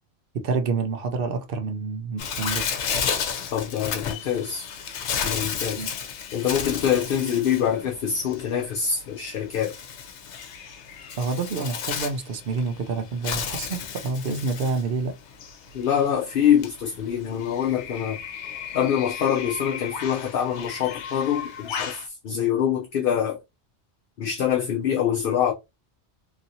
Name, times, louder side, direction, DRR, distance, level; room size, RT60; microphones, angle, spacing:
voice 1, 0.3-2.7 5.8-5.9 11.2-15.1, right 4 dB, 60° right, 0.7 m, -28 dB
Bird, 2.2-22.1, left 7 dB, 85° left, 1.0 m, -33 dB
voice 2, 3.5-4.6 5.2-5.9 6.3-9.7 15.7-18.2 18.7-23.4 24.2-25.5, left 9 dB, 60° left, 0.7 m, -25 dB
3.0 x 2.7 x 2.6 m
omnidirectional pair, 1.1 m